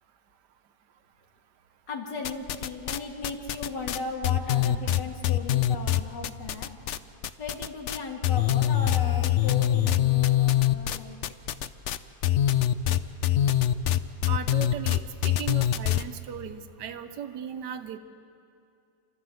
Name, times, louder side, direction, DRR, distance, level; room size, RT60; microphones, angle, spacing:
voice 1, 1.9-6.7 7.4-11.2, left 4 dB, 90° left, 0 dB, 2.9 m, -36 dB
sound 1, 2.2-3.0 3.2-7.0 7.2-16.0, left 12 dB, 65° left, 0.7 m, -24 dB
voice 2, 14.3-18.0, right 8 dB, 75° right, 10 dB, 1.5 m, -37 dB
27.5 x 13.0 x 7.9 m, 2.5 s
omnidirectional pair, 1.8 m